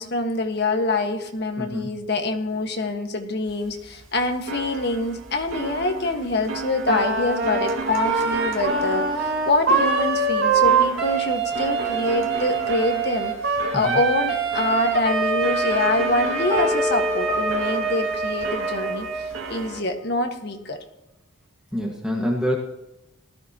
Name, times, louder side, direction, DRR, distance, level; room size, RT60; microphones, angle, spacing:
voice 1, 0.0-13.3 13.7-20.8, left 2 dB, 55° left, 4 dB, 1.6 m, -25 dB
voice 2, 1.6-1.9 13.8-14.0 21.7-22.5, equal, 5° right, -2 dB, 1.7 m, -26 dB
sound 1, 3.5-19.8, right 3 dB, 80° right, 2.1 m, -35 dB
Wind instrument woodwind instrument, 6.8-19.3, right 4 dB, 65° right, 4.9 m, -24 dB
sound 2, 16.5-19.4, left 1 dB, 25° right, 5.6 m, -29 dB
18.0 x 13.5 x 3.0 m, 0.90 s
head